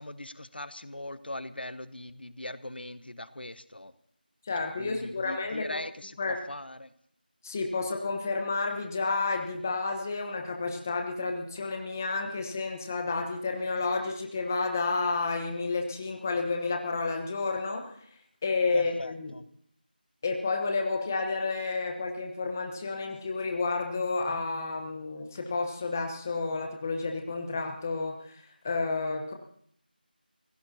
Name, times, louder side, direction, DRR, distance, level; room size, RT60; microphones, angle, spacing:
voice 1, 0.0-3.9 4.8-6.9 18.7-19.5, left 1 dB, 80° left, 14 dB, 1.0 m, -40 dB
voice 2, 4.4-5.8 6.2-6.4 7.4-17.9 18.4-19.3 20.2-29.3, left 3 dB, 15° left, 3 dB, 1.0 m, -31 dB
30.0 x 16.5 x 2.9 m, 0.63 s
figure-of-eight pair, 170°, 5 cm